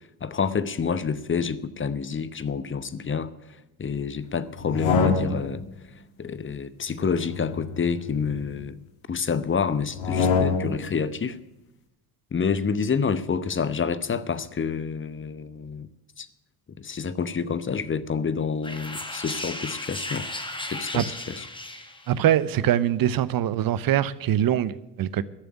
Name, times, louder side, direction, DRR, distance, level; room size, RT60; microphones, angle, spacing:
voice 1, 0.2-5.6 6.2-8.8 9.1-11.4 12.3-15.9 16.2-16.3 16.8-20.3 20.7-21.5, left 6 dB, 25° left, 0.8 m, -28 dB
sound 1, 4.6-5.6 6.9-8.6 9.9-10.9, left 5 dB, 75° left, 1.8 m, -26 dB
sound 2, 18.6-22.2, left 1 dB, 10° left, 1.6 m, -35 dB
voice 2, 22.1-25.2, right 11 dB, 50° right, 0.8 m, -23 dB
12.5 x 7.0 x 9.9 m
hypercardioid pair, 60°, 45 cm